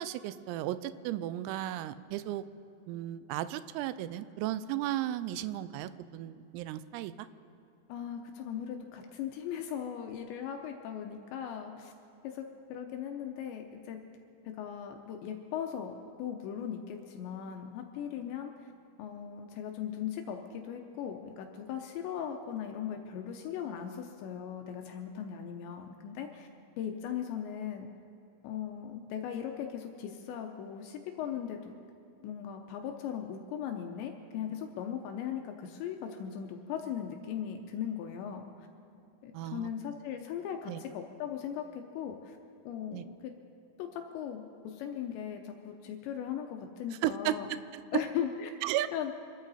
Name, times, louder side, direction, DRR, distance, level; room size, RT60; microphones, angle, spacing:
voice 1, 0.0-2.4 2.9-7.3 39.3-39.7 40.7-40.8 42.9-43.0 47.0-48.0 48.6-48.9, right 13 dB, 90° right, 14 dB, 3.3 m, -34 dB
voice 2, 7.9-11.9 12.2-12.4 12.7-14.0 14.5-18.7 19.0-26.5 26.8-27.9 28.4-31.8 32.2-38.7 39.2-41.6 42.0-42.4 42.6-43.3 43.8-47.5 47.9-48.5 48.9-49.1, left 9 dB, 80° left, 4 dB, 2.6 m, -38 dB
26.5 x 13.0 x 4.2 m, 2.8 s
omnidirectional pair, 6.0 m